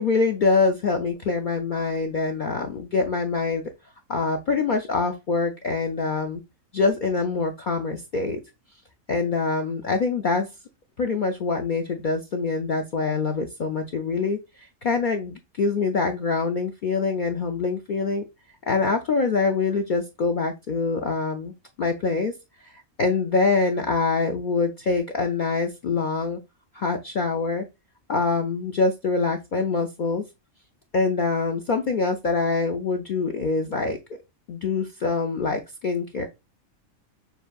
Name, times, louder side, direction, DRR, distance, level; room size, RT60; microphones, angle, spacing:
voice 1, 0.0-3.6 4.1-6.4 6.7-8.4 9.1-10.5 11.0-18.2 18.7-21.5 21.8-22.3 23.0-26.4 26.7-27.6 28.1-30.2 30.9-34.0 34.5-36.3, left 4 dB, 85° left, 3 dB, 0.4 m, -24 dB
6.9 x 2.7 x 2.3 m, 0.24 s
omnidirectional pair, 1.4 m